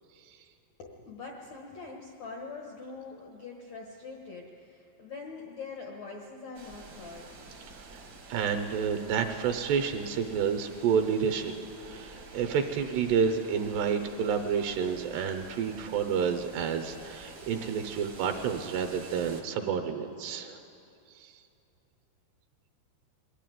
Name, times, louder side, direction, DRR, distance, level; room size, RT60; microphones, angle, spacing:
voice 1, 0.8-7.6 8.5-8.6, left 4 dB, 80° left, 0 dB, 1.5 m, -44 dB
sound 1, 6.5-19.4, right 2 dB, 60° right, 1.1 m, -49 dB
voice 2, 7.9-11.5 11.8-20.6 21.1-21.3, right 6 dB, 75° right, 6 dB, 2.8 m, -29 dB
22.0 x 13.5 x 9.2 m, 2.7 s
omnidirectional pair, 5.2 m